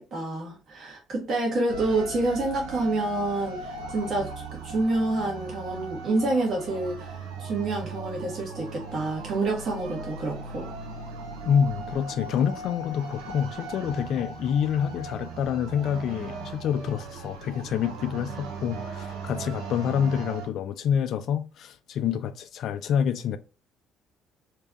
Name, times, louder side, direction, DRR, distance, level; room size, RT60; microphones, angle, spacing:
voice 1, 0.0-10.7, right 2 dB, 45° right, 1.2 m, -28 dB
sound 1, 1.7-20.5, right 4 dB, 70° right, 0.8 m, -38 dB
voice 2, 11.4-23.4, left 8 dB, 55° left, 0.5 m, -27 dB
3.3 x 2.9 x 3.4 m
figure-of-eight pair, 50°, 0 cm